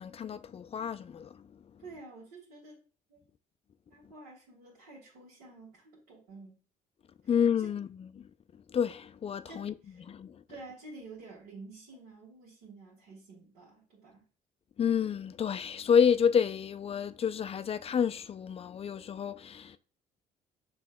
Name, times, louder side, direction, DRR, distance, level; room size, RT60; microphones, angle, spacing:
voice 1, 0.0-1.7 7.3-8.3 8.7-9.7 10.1-10.4 14.8-19.8, left 7 dB, 35° left, 0.4 m, -29 dB
voice 2, 1.8-2.8 3.1-3.2 3.9-6.6 7.6-7.7 9.5-10.0 10.5-14.3, right 3 dB, 75° right, 1.7 m, -50 dB
6.9 x 2.7 x 2.2 m
hypercardioid pair, 60°, 19 cm